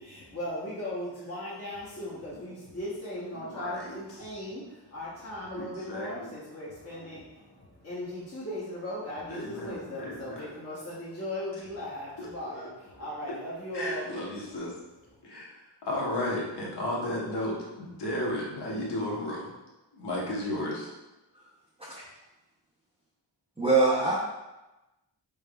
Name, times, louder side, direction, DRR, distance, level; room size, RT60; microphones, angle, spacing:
voice 1, 0.0-14.2 14.4-14.5 15.1-15.2, left 1 dB, 35° left, -9 dB, 0.9 m, -38 dB
voice 2, 3.4-3.8 5.5-6.1 9.3-10.4 12.2-12.7 13.7-14.7 15.2-15.5 15.9-19.5 19.9-20.9, left 1 dB, 65° left, -4 dB, 1.0 m, -33 dB
voice 3, 23.6-24.3, right 3 dB, 15° right, -6 dB, 0.5 m, -24 dB
4.7 x 3.4 x 2.3 m, 1.0 s
wide cardioid pair, 155°, 44 cm